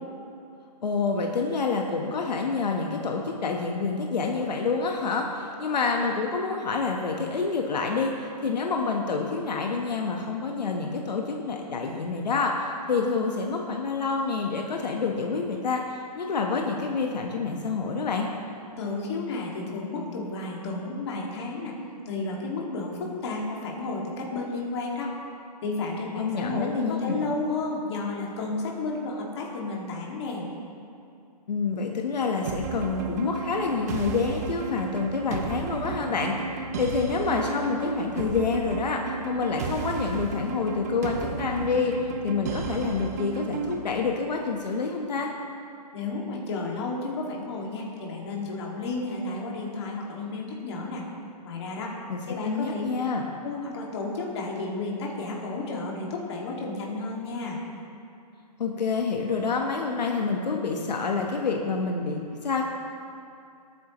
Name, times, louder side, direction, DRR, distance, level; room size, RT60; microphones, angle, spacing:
voice 1, 0.8-18.3 26.2-27.2 31.5-36.3 36.8-45.3 52.1-53.2 58.6-62.6, left 4 dB, 85° left, 1 dB, 1.3 m, -27 dB
voice 2, 18.8-21.7 22.1-25.1 25.6-30.5 45.9-51.0 51.4-51.9 52.3-52.9 53.4-57.6, left 3 dB, 40° left, -2 dB, 2.2 m, -32 dB
sound 1, 32.5-43.9, right 5 dB, 25° right, 0.6 m, -33 dB
19.0 x 9.2 x 3.1 m, 2.5 s
hypercardioid pair, 170°, 21 cm